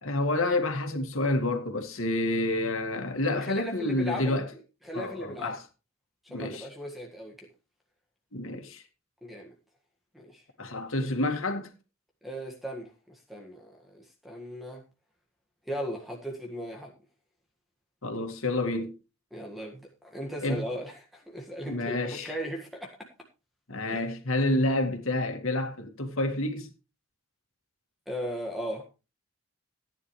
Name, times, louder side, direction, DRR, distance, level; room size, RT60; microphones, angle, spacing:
voice 1, 0.0-4.5 4.9-5.6 6.3-6.7 8.3-8.8 10.6-11.7 18.0-19.0 20.4-20.6 21.7-22.3 23.7-26.7, left 2 dB, 70° left, 2.2 m, -29 dB
voice 2, 3.3-4.3 4.8-5.6 6.2-7.5 9.2-9.5 10.1-10.4 12.2-14.8 15.7-16.9 19.3-23.1 23.9-24.0 28.1-28.9, equal, ahead, 1.7 m, -37 dB
15.0 x 10.0 x 3.2 m
head